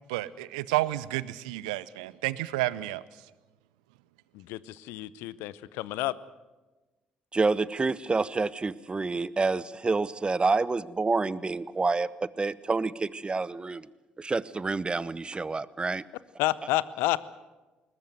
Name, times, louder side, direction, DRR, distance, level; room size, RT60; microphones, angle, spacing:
voice 1, 0.1-3.0, right 17 dB, 75° right, 19 dB, 0.6 m, -30 dB
voice 2, 4.3-6.1 16.4-17.3, left 17 dB, 70° left, 19 dB, 0.7 m, -30 dB
voice 3, 7.3-13.9 14.2-16.0, right 3 dB, 25° right, 19 dB, 0.9 m, -28 dB
21.5 x 19.5 x 7.9 m, 1.2 s
hypercardioid pair, 50°, 4 cm